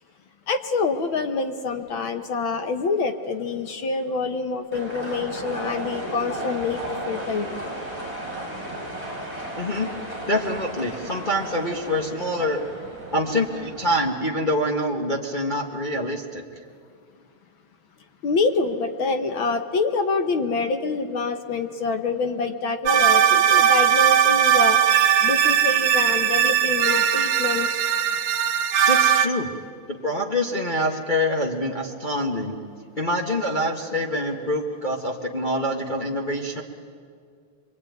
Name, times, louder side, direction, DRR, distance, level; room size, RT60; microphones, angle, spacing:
voice 1, 0.5-7.5 18.2-24.8 25.2-27.8, left 4 dB, 55° left, 7 dB, 1.5 m, -26 dB
sound 1, 4.7-14.1, right 1 dB, 15° left, 7.6 m, -35 dB
voice 2, 9.6-9.9 10.3-12.6 13.1-16.6 28.8-29.5 30.0-32.6 33.0-36.6, left 1 dB, 75° left, -1 dB, 0.4 m, -25 dB
sound 2, 22.9-29.3, right 9 dB, 90° right, 2.5 m, -19 dB
24.5 x 24.0 x 9.3 m, 2.1 s
omnidirectional pair, 3.4 m